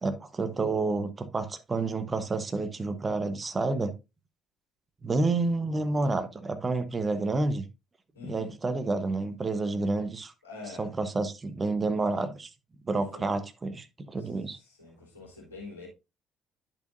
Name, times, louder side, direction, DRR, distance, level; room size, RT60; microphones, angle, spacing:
voice 1, 0.0-3.9 5.0-7.6 8.2-10.3 10.6-12.5 12.9-14.6, right 3 dB, 25° right, 1.1 m, -29 dB
voice 2, 8.2-8.5 10.4-10.8 13.1-13.3 14.8-15.9, left 4 dB, 80° left, 3.5 m, -44 dB
10.5 x 5.9 x 2.6 m
figure-of-eight pair, 50°, 0 cm